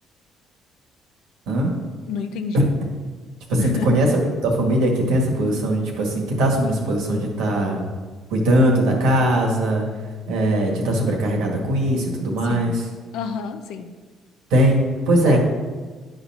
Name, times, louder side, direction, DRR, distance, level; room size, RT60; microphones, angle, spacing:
voice 1, 2.1-2.7 3.6-3.9 12.4-12.7 13.1-13.9 15.2-15.4, left 6 dB, 80° left, 8 dB, 0.7 m, -29 dB
voice 2, 3.5-4.1 4.4-7.8 8.3-9.9 10.3-12.8 14.5-15.4, right 1 dB, 85° right, 0 dB, 1.8 m, -20 dB
9.7 x 4.0 x 6.0 m, 1.4 s
cardioid pair, 85°, 0 cm